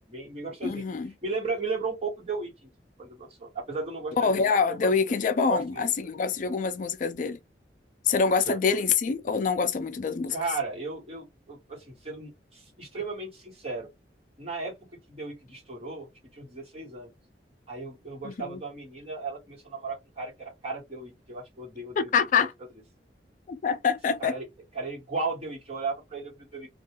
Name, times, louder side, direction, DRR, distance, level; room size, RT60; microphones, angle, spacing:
voice 1, 0.1-0.8 1.2-2.7 3.0-4.9 5.4-5.8 8.5-8.8 10.3-13.9 14.4-14.8 15.1-16.1 16.3-17.1 17.7-22.1 22.4-22.5 24.2-24.4 24.7-26.7, right 3 dB, 35° right, 1.5 m, -35 dB
voice 2, 0.6-1.1 4.2-7.4 8.0-10.4 18.2-18.6 22.0-22.5 23.5-24.4, left 5 dB, 45° left, 0.3 m, -25 dB
2.6 x 2.3 x 2.9 m
head